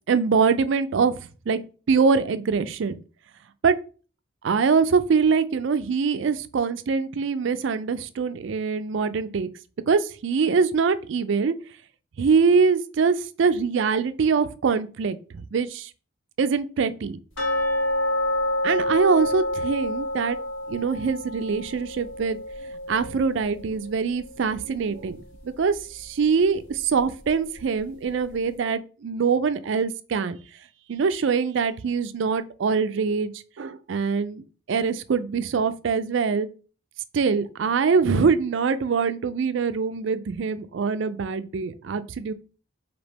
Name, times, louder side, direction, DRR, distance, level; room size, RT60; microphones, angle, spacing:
voice 1, 0.1-1.1 1.5-1.6 1.9-2.9 3.6-3.8 4.4-9.5 9.9-11.5 12.2-15.9 16.4-17.2 18.6-20.4 20.7-22.4 22.9-25.2 25.4-30.4 30.9-33.3 33.6-36.5 37.1-42.3, right 5 dB, 60° right, 13 dB, 0.4 m, -23 dB
sound 1, 17.4-24.2 24.5-24.6 25.1-25.2 25.8-25.9, left 1 dB, 65° left, 1.2 m, -28 dB
5.1 x 2.8 x 3.4 m, 0.37 s
head